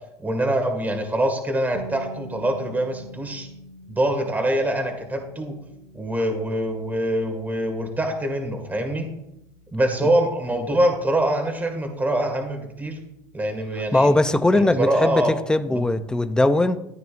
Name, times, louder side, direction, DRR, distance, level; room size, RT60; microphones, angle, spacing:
voice 1, 0.2-3.5 3.9-5.5 5.9-9.1 9.7-13.0 13.3-14.1 14.5-15.3 15.7-15.9, right 1 dB, 15° right, 2.1 m, -24 dB
sound 1, 1.7-13.6, right 2 dB, 80° right, 2.2 m, -46 dB
voice 2, 13.9-16.8, left 2 dB, 5° left, 0.6 m, -20 dB
14.0 x 9.2 x 2.6 m
supercardioid pair, 110°, 13 cm